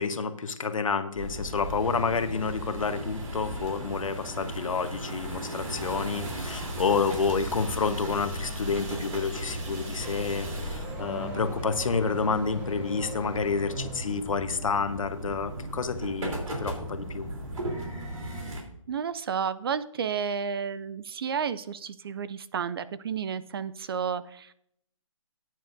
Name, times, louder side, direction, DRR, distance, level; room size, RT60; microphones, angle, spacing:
voice 1, 0.0-17.3, left 5 dB, 75° left, 9 dB, 1.1 m, -29 dB
sound 1, 1.1-9.6, left 1 dB, 20° left, 2.3 m, -48 dB
sound 2, 1.2-18.6, right 1 dB, 75° right, 3.4 m, -36 dB
Car / Accelerating revving vroom, 9.4-14.3, right 1 dB, 10° right, 2.2 m, -41 dB
voice 2, 18.9-24.5, right 7 dB, 45° right, 15 dB, 0.4 m, -31 dB
14.0 x 9.1 x 2.6 m, 0.72 s
hypercardioid pair, 150°, 17 cm